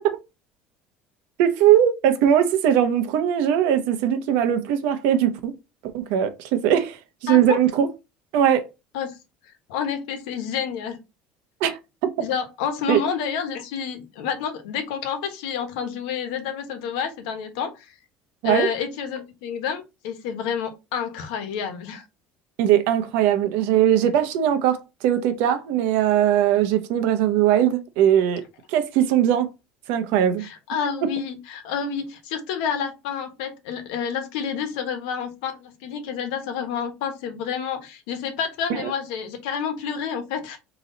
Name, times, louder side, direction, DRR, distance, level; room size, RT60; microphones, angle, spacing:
voice 1, 1.4-5.5 5.9-7.9 8.3-8.6 11.6-11.8 12.9-13.0 18.4-18.7 22.6-28.4 28.7-29.5 29.9-30.4 31.0-31.1 38.7-38.9, right 10 dB, 65° right, 0.8 m, -20 dB
voice 2, 7.3-7.6 8.9-9.2 9.7-11.0 12.2-17.9 18.4-22.0 30.4-40.6, left 7 dB, 85° left, 1.1 m, -29 dB
4.0 x 3.0 x 3.8 m
cardioid pair, 180°, 4 cm